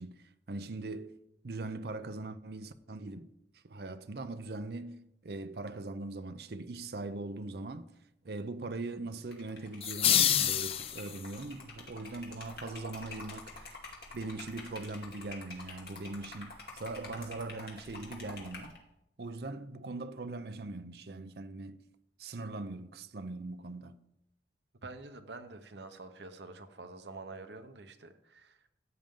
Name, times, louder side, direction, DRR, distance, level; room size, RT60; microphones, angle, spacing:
voice 1, 0.0-3.3 3.6-7.9 8.2-13.7 14.1-18.8 19.2-21.8 22.2-24.0, right 2 dB, 60° right, 0.6 m, -41 dB
Liquid, 9.2-18.8, left 3 dB, 60° left, 2.4 m, -48 dB
sound 1, 9.8-11.4, left 9 dB, 30° left, 0.4 m, -27 dB
voice 2, 24.8-28.6, right 3 dB, 75° right, 1.0 m, -47 dB
14.0 x 8.9 x 3.8 m
head